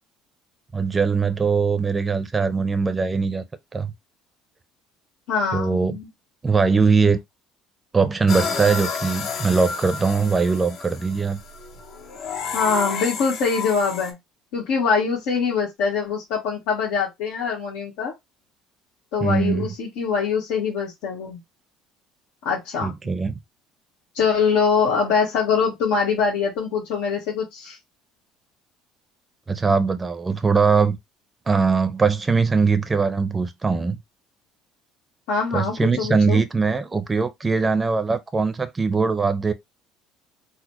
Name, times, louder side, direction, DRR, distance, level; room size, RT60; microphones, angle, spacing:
voice 1, 0.7-3.4 3.7-3.9 5.5-6.0 6.4-7.2 7.9-11.4 19.2-19.7 22.8-23.4 29.5-31.0 31.5-34.0 35.5-39.5, right 4 dB, 20° right, 0.6 m, -21 dB
voice 2, 5.3-6.1 12.5-14.2 14.5-18.1 19.1-21.4 22.4-22.9 24.1-27.8 35.3-36.4, left 5 dB, 80° left, 1.3 m, -23 dB
sound 1, 8.3-14.1, left 5 dB, 55° left, 0.8 m, -31 dB
4.0 x 2.1 x 3.0 m
cardioid pair, 120°, 0 cm